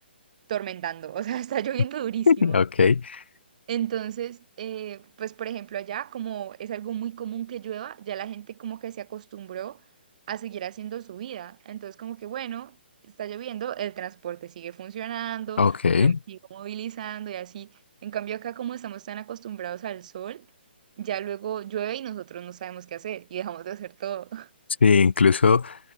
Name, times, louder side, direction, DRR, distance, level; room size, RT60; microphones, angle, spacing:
voice 1, 0.5-2.6 3.7-9.8 10.3-12.7 13.2-15.6 16.0-17.7 18.0-20.5 21.0-24.5, right 10 dB, 45° right, 5.3 m, -34 dB
voice 2, 2.3-3.2 15.6-16.2 24.8-25.8, left 5 dB, 80° left, 1.1 m, -19 dB
hypercardioid pair, 160°, 6 cm